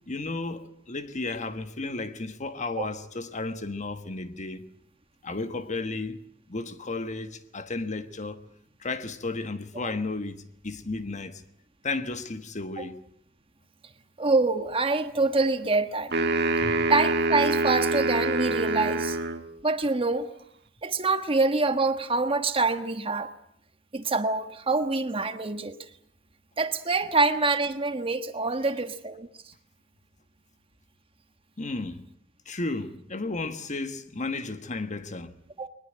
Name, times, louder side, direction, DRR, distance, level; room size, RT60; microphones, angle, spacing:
voice 1, 0.1-4.6 5.2-6.2 6.5-8.4 8.8-11.4 11.8-13.0 16.6-16.8 31.6-32.0 32.5-35.3, left 3 dB, 40° left, 1.3 m, -33 dB
voice 2, 14.2-16.1 16.9-19.2 19.6-20.3 20.8-23.3 23.9-25.8 26.6-29.3 35.6-35.7, right 3 dB, 30° right, 1.3 m, -25 dB
sound 1, 16.1-19.4, right 2 dB, 60° right, 1.6 m, -25 dB
22.0 x 20.5 x 8.8 m
head